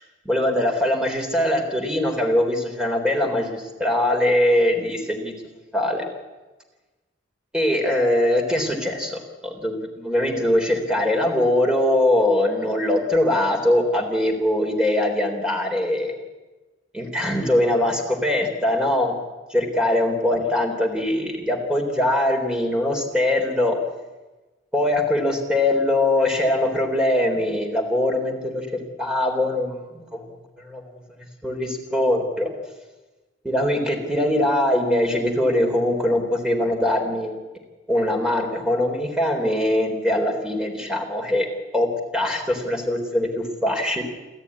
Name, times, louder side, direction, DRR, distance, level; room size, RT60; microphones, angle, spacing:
voice 1, 0.3-5.4 5.7-6.0 7.5-16.1 16.9-19.1 19.5-23.8 24.7-30.8 31.4-32.5 33.4-37.4 37.9-41.5 41.7-44.0, left 1 dB, 5° right, 3 dB, 3.7 m, -22 dB
28.5 x 13.5 x 9.8 m, 1.2 s
head